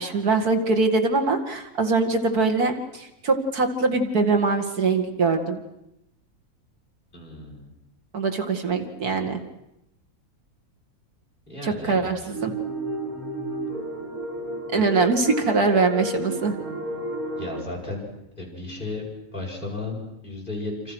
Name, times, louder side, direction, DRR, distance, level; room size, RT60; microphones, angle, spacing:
voice 1, 0.0-5.6 8.1-9.4 11.6-12.5 14.7-16.5, right 3 dB, 90° right, 5 dB, 2.8 m, -23 dB
voice 2, 7.1-7.7 11.5-12.3 14.7-14.8 17.4-18.1 18.3-19.0 19.3-20.9, left 2 dB, 35° left, -2 dB, 8.2 m, -34 dB
sound 1, 12.3-17.6, right 1 dB, 70° right, 4.6 m, -32 dB
27.5 x 27.5 x 6.4 m, 0.86 s
omnidirectional pair, 1.6 m